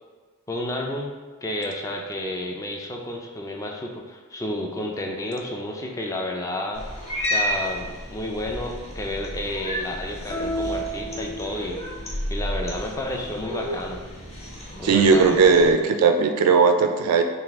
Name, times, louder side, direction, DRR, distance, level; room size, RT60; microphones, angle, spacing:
voice 1, 0.5-1.1 1.4-6.9 7.2-14.0 14.7-15.4, left 1 dB, 15° left, 1 dB, 0.3 m, -31 dB
Cat, 6.7-15.7, equal, 30° left, 0.7 m, -32 dB
sound 1, 10.3-12.1, right 1 dB, 60° left, 0.8 m, -31 dB
voice 2, 14.8-17.2, right 5 dB, 80° right, 6 dB, 0.4 m, -17 dB
4.1 x 2.4 x 3.4 m, 1.4 s
head